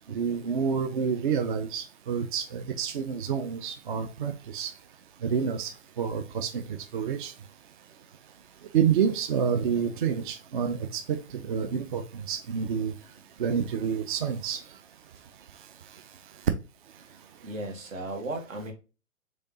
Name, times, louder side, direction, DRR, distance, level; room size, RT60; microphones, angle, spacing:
voice 1, 0.1-4.7 5.2-5.7 6.0-6.6 6.9-7.3 8.7-12.0 12.3-12.9 13.4-14.6, right 7 dB, 40° right, 0.4 m, -28 dB
voice 2, 17.4-18.7, right 2 dB, 75° right, 1.4 m, -36 dB
3.6 x 3.4 x 2.6 m
figure-of-eight pair, 125°, 40 cm